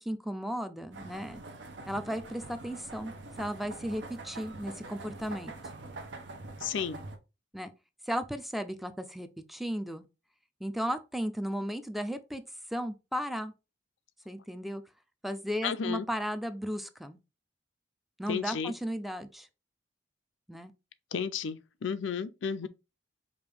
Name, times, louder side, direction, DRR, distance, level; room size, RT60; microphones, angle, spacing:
voice 1, 0.0-1.4 1.9-3.1 3.4-5.5 7.5-7.7 8.1-10.0 10.6-12.4 12.7-13.5 14.3-14.8 15.2-17.2 18.2-19.5 20.5-20.7, equal, ahead, 0.3 m, -35 dB
sound 1, 0.9-7.2, right 2 dB, 75° right, 0.8 m, -45 dB
voice 2, 6.6-7.0 15.6-16.1 18.3-18.7 21.1-22.7, left 7 dB, 90° left, 0.5 m, -33 dB
5.0 x 2.6 x 3.3 m
head